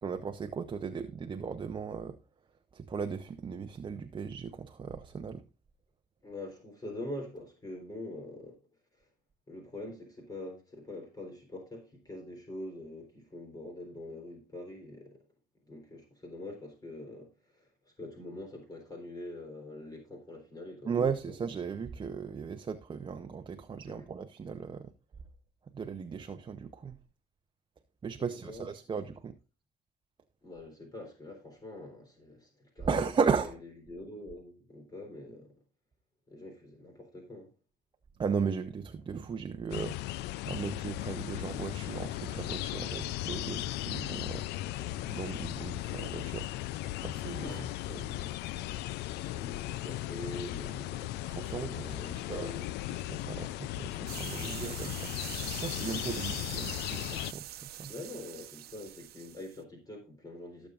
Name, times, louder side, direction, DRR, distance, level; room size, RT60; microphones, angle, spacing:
voice 1, 0.0-2.2 2.7-5.4 20.9-24.9 25.7-27.0 28.0-29.3 32.9-33.6 38.2-40.0 40.5-44.4 45.1-47.4 51.3-51.9 52.3-52.5 52.9-57.9, right 6 dB, 30° right, 0.8 m, -36 dB
voice 2, 6.2-8.6 9.0-9.1 9.5-15.2 15.6-17.7 18.0-21.0 21.3-21.4 23.8-24.1 28.2-28.7 30.4-33.1 33.4-33.6 33.9-35.6 36.3-37.5 43.4-43.5 43.9-44.0 44.8-45.0 47.4-48.4 49.2-51.1 51.5-52.7 56.6-56.7 57.9-60.7, left 1 dB, 20° left, 3.7 m, -44 dB
sound 1, 39.7-57.3, left 16 dB, 80° left, 0.4 m, -37 dB
sound 2, 54.1-59.6, right 13 dB, 65° right, 0.9 m, -44 dB
17.0 x 7.3 x 2.5 m
cardioid pair, 110°, 17 cm